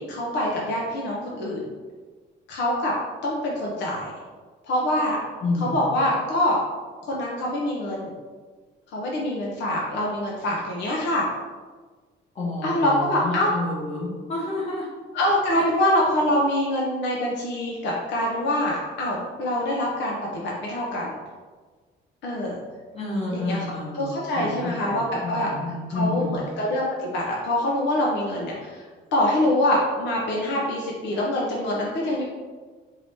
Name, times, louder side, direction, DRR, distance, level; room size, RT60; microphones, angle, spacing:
voice 1, 0.0-1.7 2.5-2.9 3.2-4.1 4.7-5.2 5.6-6.6 7.0-8.1 8.9-11.3 12.6-13.5 15.1-21.1 22.2-22.6 23.3-23.6 23.9-25.5 25.9-28.8 29.1-32.2, left 1 dB, 65° left, -4 dB, 0.7 m, -25 dB
voice 2, 5.4-5.9 12.3-14.9 15.6-15.7 22.9-24.0 24.4-26.4, left 2 dB, 30° left, -5 dB, 1.3 m, -29 dB
4.6 x 2.7 x 3.4 m, 1.4 s
cardioid pair, 150°, 20 cm